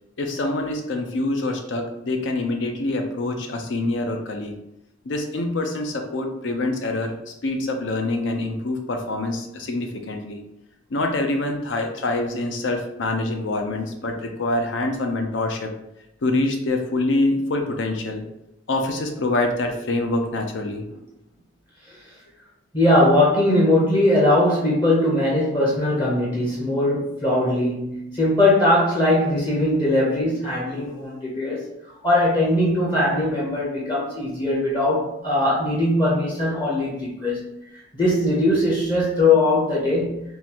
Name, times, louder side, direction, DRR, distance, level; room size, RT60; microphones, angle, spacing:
voice 1, 0.2-4.6 5.1-10.4 10.9-15.7 16.2-18.2 18.7-20.8, left 2 dB, 80° left, 4 dB, 0.5 m, -25 dB
voice 2, 22.7-31.7 32.0-37.4 37.9-40.2, left 1 dB, 25° left, -5 dB, 0.6 m, -20 dB
3.7 x 2.6 x 2.9 m, 0.84 s
head